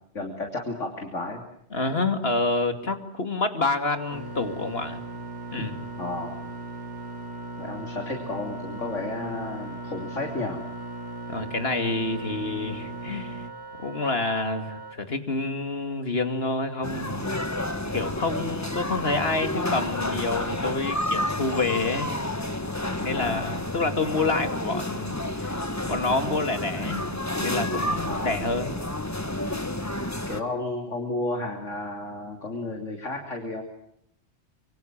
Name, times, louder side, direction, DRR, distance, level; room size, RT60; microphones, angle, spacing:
voice 1, 0.1-1.4 5.6-5.7 6.0-6.4 7.6-10.6 23.1-23.6 28.1-28.4 30.3-33.6, left 2 dB, 90° left, 3 dB, 3.5 m, -32 dB
voice 2, 1.7-5.0 5.5-5.8 11.3-13.4 13.8-17.4 17.9-22.1 23.0-25.6 25.9-27.0 27.4-28.7, left 3 dB, 55° left, 8 dB, 2.8 m, -28 dB
Wind instrument woodwind instrument, 3.7-15.0, right 2 dB, 20° right, 2.6 m, -43 dB
sound 1, 4.1-13.5, right 2 dB, 70° right, 2.9 m, -39 dB
sound 2, 16.8-30.4, left 1 dB, 15° left, 1.5 m, -30 dB
26.5 x 24.5 x 7.5 m, 0.72 s
omnidirectional pair, 1.2 m